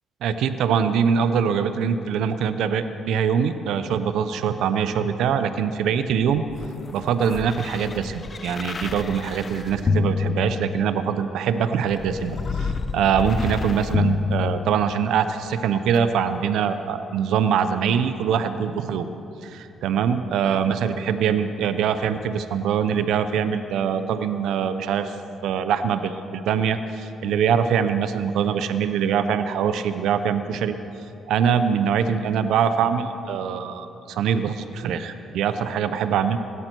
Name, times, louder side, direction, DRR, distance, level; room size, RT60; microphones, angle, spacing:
voice 1, 0.2-6.4 6.9-19.1 19.4-25.1 25.4-30.8 31.3-36.4, right 7 dB, 80° right, 10 dB, 0.7 m, -23 dB
sound 1, 6.2-11.1 11.9-15.2 15.9-16.0, left 4 dB, 35° left, 0.6 m, -28 dB
18.0 x 12.5 x 4.5 m, 2.7 s
cardioid pair, 90°, 0 cm